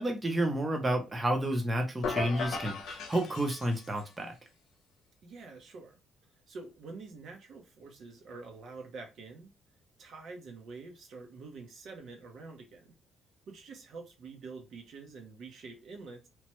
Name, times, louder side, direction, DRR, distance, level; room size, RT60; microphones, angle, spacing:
voice 1, 0.0-4.3, right 1 dB, 15° right, 0.6 m, -30 dB
sound 1, 2.0-4.1, left 4 dB, 75° left, 0.7 m, -36 dB
voice 2, 5.2-6.0 6.5-9.5 10.0-13.0 13.5-16.3, right 4 dB, 55° right, 0.7 m, -47 dB
3.0 x 2.1 x 3.0 m
cardioid pair, 145°, 0 cm